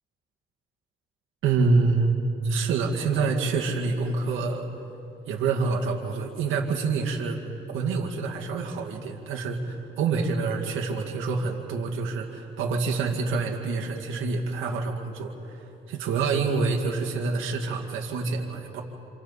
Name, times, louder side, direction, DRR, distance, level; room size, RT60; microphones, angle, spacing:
voice 1, 1.4-2.1 2.4-4.7 5.3-7.4 7.7-18.8, right 4 dB, 85° right, 0 dB, 2.2 m, -27 dB
27.5 x 27.5 x 4.2 m, 2.8 s
cardioid pair, 90°, 20 cm